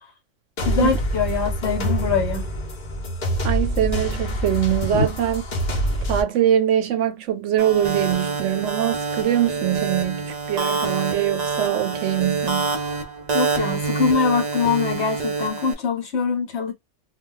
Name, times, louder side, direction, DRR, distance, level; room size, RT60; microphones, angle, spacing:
sound 1, 0.6-6.2, equal, 45° left, 0.8 m, -26 dB
voice 1, 0.7-2.4 4.9-5.0 13.3-16.7, left 5 dB, 65° left, 1.1 m, -23 dB
voice 2, 3.4-5.4 6.1-12.8, right 10 dB, 75° right, 0.9 m, -23 dB
sound 2, 7.6-15.7, right 4 dB, 40° right, 0.7 m, -26 dB
2.2 x 2.2 x 3.7 m
omnidirectional pair, 1.3 m